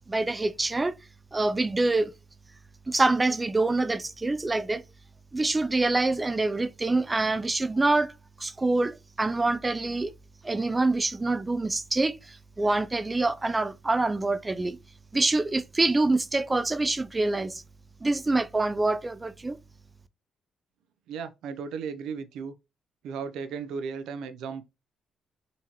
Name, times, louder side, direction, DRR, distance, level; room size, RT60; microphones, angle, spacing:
voice 1, 0.1-1.0 1.3-2.1 2.9-4.8 5.3-8.1 8.4-10.1 10.4-14.8 15.1-17.6 18.0-19.6, right 2 dB, 20° right, 0.4 m, -26 dB
voice 2, 21.1-22.6 23.0-24.6, right 6 dB, 85° right, 0.5 m, -35 dB
3.8 x 2.9 x 2.9 m
cardioid pair, 90°, 0 cm